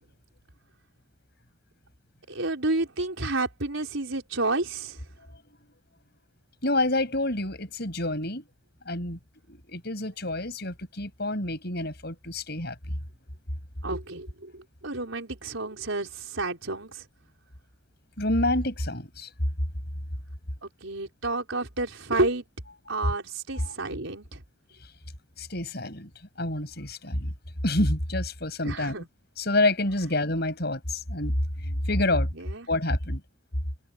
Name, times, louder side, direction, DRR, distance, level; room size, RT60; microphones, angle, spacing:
voice 1, 2.3-5.0 13.8-17.0 20.6-22.4 22.9-24.4 28.6-29.1 32.4-32.7, right 2 dB, 80° right, 4.7 m, -30 dB
voice 2, 6.6-8.4 8.9-9.2 9.5-13.0 18.2-19.3 23.6-23.7 25.4-26.1 26.4-27.3 27.6-29.0 29.4-31.4 31.6-32.3 32.7-33.2, left 1 dB, 55° left, 7.7 m, -28 dB
head